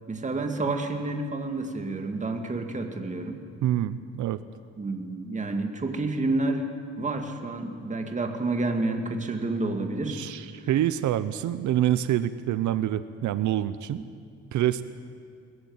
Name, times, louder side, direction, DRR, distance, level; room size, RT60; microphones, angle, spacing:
voice 1, 0.1-3.4 4.8-6.7 7.0-10.2, right 2 dB, 25° right, 5 dB, 2.2 m, -29 dB
voice 2, 3.6-4.4 10.1-14.0 14.5-14.8, right 12 dB, 85° right, 13 dB, 0.8 m, -26 dB
22.0 x 19.0 x 9.7 m, 2.2 s
cardioid pair, 150°, 29 cm